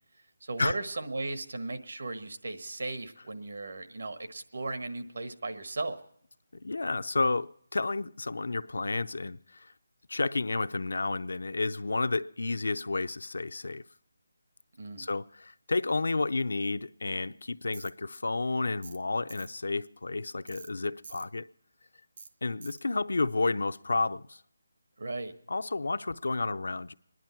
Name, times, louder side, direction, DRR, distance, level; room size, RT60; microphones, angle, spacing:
voice 1, 0.4-6.0 14.7-15.1 25.0-25.3, right 2 dB, 65° right, 1.3 m, -36 dB
voice 2, 6.6-9.7 10.1-13.8 15.0-21.5 22.4-24.4 25.5-26.9, left 3 dB, 80° left, 0.5 m, -31 dB
Tools, 17.7-17.9 18.8-19.0 19.3-19.5 20.5-20.7 21.0-21.3 22.2-22.3 22.6-22.8, right 4 dB, 40° right, 0.8 m, -47 dB
24.5 x 11.0 x 4.4 m
hypercardioid pair, 175°, 0 cm